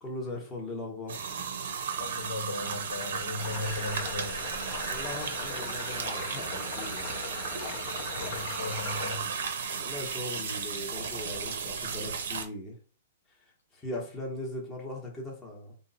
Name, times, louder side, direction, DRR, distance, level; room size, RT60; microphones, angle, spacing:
voice 1, 0.0-1.4 3.4-3.5 4.9-7.1 9.8-12.8 13.4-15.7, left 1 dB, 10° left, -2 dB, 0.8 m, -39 dB
sound 1, 1.1-12.5, right 6 dB, 70° right, 0.6 m, -35 dB
voice 2, 2.0-4.5 8.0-9.2, left 2 dB, 85° left, 4 dB, 0.9 m, -37 dB
Stream Water C, 3.4-9.2, left 7 dB, 45° left, 0.6 m, -40 dB
3.2 x 2.0 x 3.9 m, 0.39 s
hypercardioid pair, 155°, 0 cm